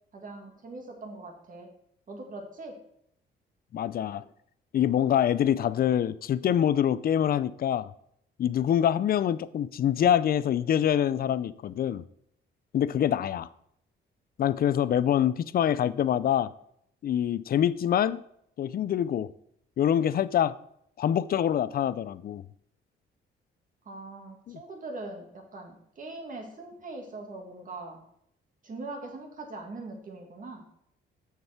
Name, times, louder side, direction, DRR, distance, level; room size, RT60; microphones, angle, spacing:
voice 1, 0.1-1.7 2.1-2.8 23.9-28.0 28.6-30.6, right 2 dB, 40° right, 2.1 m, -41 dB
voice 2, 3.7-4.2 4.7-7.9 8.4-12.0 12.7-13.5 14.4-16.5 17.0-18.2 18.6-19.3 19.8-20.5 21.0-22.4 24.5-24.6, left 10 dB, 50° left, 0.4 m, -25 dB
6.8 x 6.6 x 4.5 m
cardioid pair, 90°, 20 cm